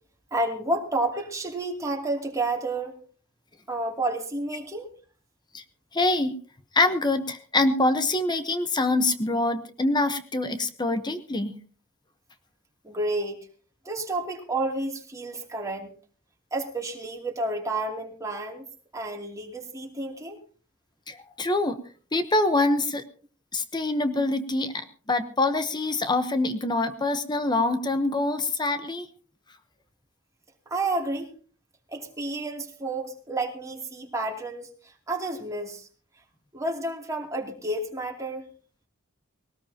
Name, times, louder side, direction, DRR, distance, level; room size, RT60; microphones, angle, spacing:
voice 1, 0.3-2.9 3.7-4.9 12.8-13.4 13.8-15.9 16.5-18.6 18.9-20.4 30.7-31.3 31.9-35.9 36.5-38.4, right 2 dB, 15° right, 0 dB, 2.7 m, -30 dB
voice 2, 5.9-6.4 6.7-11.6 21.1-21.8 22.1-23.0 23.5-29.1, left 2 dB, 20° left, 10 dB, 0.9 m, -25 dB
20.0 x 18.5 x 2.8 m, 0.40 s
head